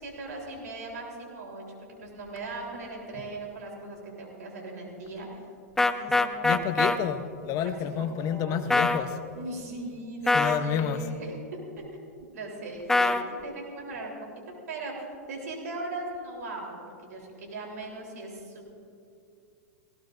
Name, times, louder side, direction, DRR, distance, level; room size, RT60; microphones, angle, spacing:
voice 1, 0.0-1.6 2.0-5.4 5.9-6.6 7.6-8.6 9.4-11.8 12.2-13.1 13.4-14.1 14.5-16.8 17.1-18.8, right 2 dB, 75° right, -1 dB, 3.6 m, -39 dB
sound 1, 5.8-7.0 8.7-9.0 10.3-10.6 12.9-13.2, left 2 dB, 5° left, 0.5 m, -22 dB
voice 2, 6.4-9.2 10.3-11.0, left 8 dB, 40° left, 10 dB, 0.8 m, -29 dB
18.5 x 16.5 x 2.6 m, 2.4 s
hypercardioid pair, 110°, 9 cm